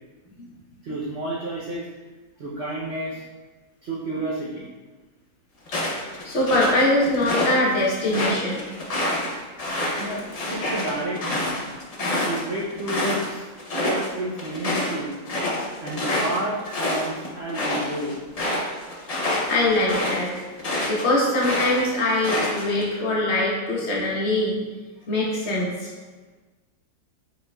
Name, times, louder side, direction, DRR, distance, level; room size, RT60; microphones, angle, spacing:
voice 1, 0.8-1.9 2.4-3.2 3.8-4.7 10.0-10.2 10.5-11.6 12.2-13.5 13.8-15.1 15.8-18.2, right 1 dB, 60° right, -6 dB, 0.7 m, -30 dB
sound 1, 5.7-7.5 7.9-13.3 13.6-14.1 14.4-21.0 21.4-22.8, left 1 dB, 85° left, 0.3 m, -27 dB
voice 2, 6.2-8.6 19.5-20.3 20.9-24.6 25.1-25.9, left 1 dB, 45° left, -4 dB, 1.2 m, -22 dB
5.0 x 4.1 x 2.3 m, 1.3 s
omnidirectional pair, 1.7 m